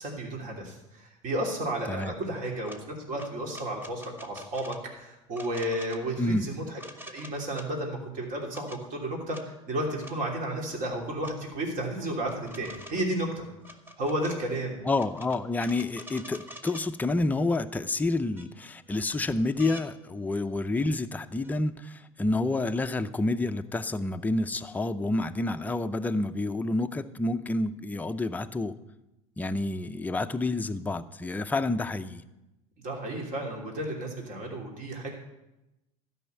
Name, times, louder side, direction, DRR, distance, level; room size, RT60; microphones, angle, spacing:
voice 1, 0.0-6.8 7.1-14.8 32.8-35.2, right 1 dB, 50° right, 0 dB, 3.0 m, -33 dB
sound 1, 2.7-2.8 3.2-4.8 5.3-6.0 6.8-7.7 8.3-8.8 9.3-9.4 10.0-10.2 11.2-11.4 12.3-13.1 13.6-14.4 14.9-16.9 17.9-18.0 18.4-18.9 19.6-19.9 21.4-21.6, left 1 dB, 10° right, 1.1 m, -46 dB
voice 2, 14.8-28.7 29.4-32.2, left 2 dB, 10° left, 8 dB, 0.5 m, -29 dB
12.0 x 5.6 x 8.0 m, 0.96 s
hypercardioid pair, 95°, 17 cm